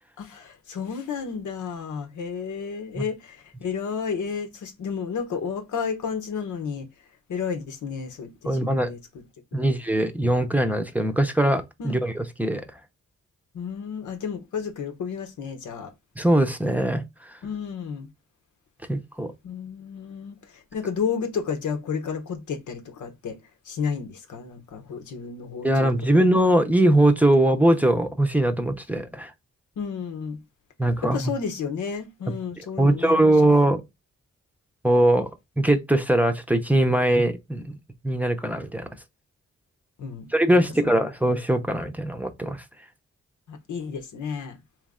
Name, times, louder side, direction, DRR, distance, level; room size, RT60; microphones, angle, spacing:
voice 1, 0.2-6.9 7.3-9.2 9.5-9.7 11.8-12.0 13.5-15.9 17.4-18.1 19.4-23.4 23.7-26.2 29.8-30.4 31.1-33.3 40.0-40.9 43.5-44.6, left 6 dB, 85° left, 0.9 m, -32 dB
voice 2, 8.4-8.9 9.5-12.6 16.2-17.4 18.9-19.3 25.6-29.3 30.8-31.3 32.8-33.8 34.8-35.3 35.6-37.8 38.0-38.9 40.3-42.6, right 1 dB, 5° right, 0.6 m, -21 dB
3.5 x 3.2 x 3.6 m
cardioid pair, 80°, 29 cm